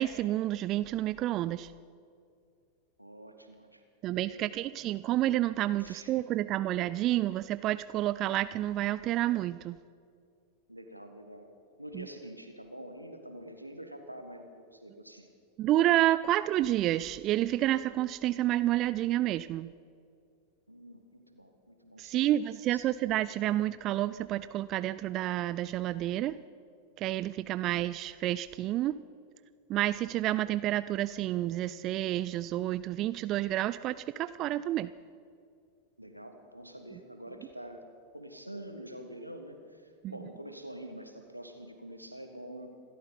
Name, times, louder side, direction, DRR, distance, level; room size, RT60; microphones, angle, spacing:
voice 1, 0.0-1.7 4.0-9.8 11.9-12.0 15.6-19.7 22.0-26.4 27.0-28.9 29.7-34.9 40.0-40.1, right 14 dB, 35° right, 15 dB, 0.3 m, -29 dB
voice 2, 3.0-3.8 4.2-4.7 5.8-6.1 10.7-11.5 11.8-15.3 20.7-22.3 22.7-22.9 36.0-37.8 38.1-42.7, right 1 dB, 90° right, 5 dB, 1.6 m, -46 dB
27.0 x 13.0 x 4.0 m, 2.3 s
figure-of-eight pair, 90°, 0 cm